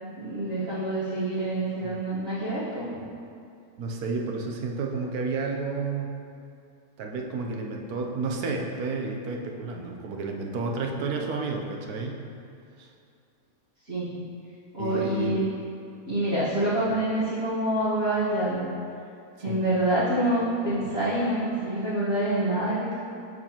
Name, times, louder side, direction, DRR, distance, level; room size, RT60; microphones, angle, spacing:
voice 1, 0.0-2.9 13.9-14.2 14.7-15.4 16.1-18.6 19.4-22.9, right 1 dB, 45° right, -12 dB, 1.4 m, -26 dB
voice 2, 3.8-6.2 7.0-12.2 12.8-12.9 14.8-15.4 19.5-19.6, right 4 dB, 75° right, 1 dB, 1.2 m, -31 dB
6.5 x 6.3 x 2.9 m, 2.4 s
omnidirectional pair, 1.6 m